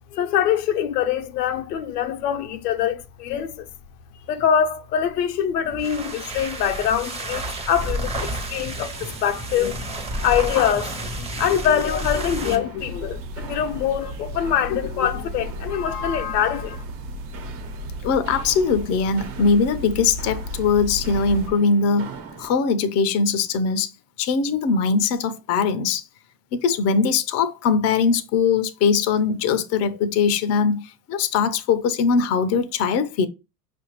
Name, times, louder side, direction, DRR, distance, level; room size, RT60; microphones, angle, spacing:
voice 1, 0.1-3.7 4.3-9.9 10.2-16.8, left 9 dB, 80° left, 0.6 m, -24 dB
sound 1, 5.6-12.7, right 1 dB, 15° right, 0.8 m, -31 dB
Walk footsteps, 8.7-22.6, right 5 dB, 55° right, 1.2 m, -42 dB
sound 2, 12.8-21.5, left 1 dB, 30° right, 0.4 m, -34 dB
voice 2, 18.0-22.1 22.4-23.9 24.2-26.0 26.5-33.3, left 5 dB, 35° left, 0.5 m, -21 dB
5.5 x 2.5 x 3.0 m
hypercardioid pair, 90°, 48 cm